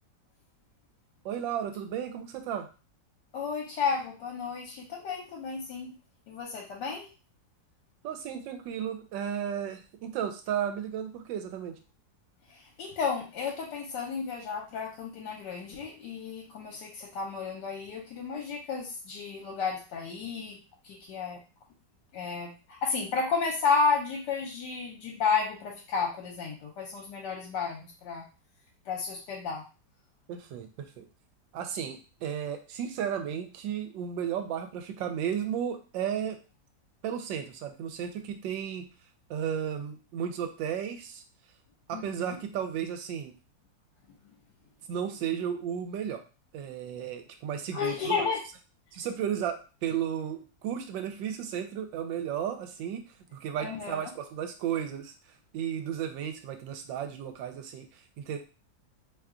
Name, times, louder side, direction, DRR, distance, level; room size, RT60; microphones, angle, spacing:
voice 1, 1.2-2.7 8.0-11.8 30.3-31.0 31.5-36.4 37.0-38.8 39.3-41.2 41.9-43.3 44.9-46.2 46.5-48.2 48.9-53.0 53.3-55.1 55.5-58.4, right 9 dB, 85° right, 7 dB, 1.3 m, -34 dB
voice 2, 3.3-5.9 6.3-7.0 12.5-20.6 20.8-21.4 22.1-22.5 22.8-28.2 28.9-29.6 41.9-42.4 47.7-48.4 53.6-54.1, left 5 dB, 75° left, -1 dB, 1.3 m, -32 dB
3.1 x 2.3 x 3.6 m, 0.33 s
omnidirectional pair, 2.0 m